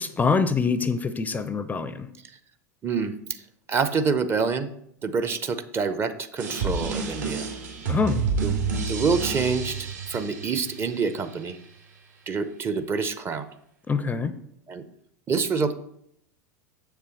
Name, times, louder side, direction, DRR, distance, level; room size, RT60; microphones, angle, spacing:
voice 1, 0.0-2.1 7.9-8.3 13.9-14.3, left 4 dB, 15° left, 13 dB, 0.5 m, -25 dB
voice 2, 2.8-3.4 3.7-4.7 5.0-7.5 8.4-8.5 8.9-11.6 12.3-13.5 14.7-14.8 15.3-15.7, right 5 dB, 25° right, 10 dB, 0.7 m, -26 dB
sound 1, 6.4-11.3, right 4 dB, 70° right, 2.6 m, -29 dB
7.3 x 6.8 x 4.5 m, 0.72 s
figure-of-eight pair, 85°, 10 cm